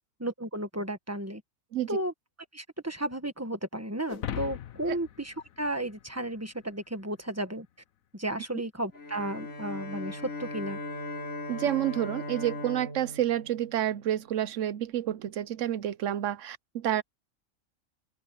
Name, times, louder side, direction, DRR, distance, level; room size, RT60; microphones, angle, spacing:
voice 1, 0.2-1.4 1.9-2.1 2.5-7.7 8.1-10.8, right 1 dB, 10° right, 1.5 m, -33 dB
sound 1, 4.1-6.6, left 10 dB, 80° left, 1.3 m, -39 dB
Bowed string instrument, 8.9-14.4, left 2 dB, 60° left, 3.4 m, -39 dB
voice 2, 11.5-17.0, right 11 dB, 70° right, 1.0 m, -29 dB
open air
omnidirectional pair, 1.4 m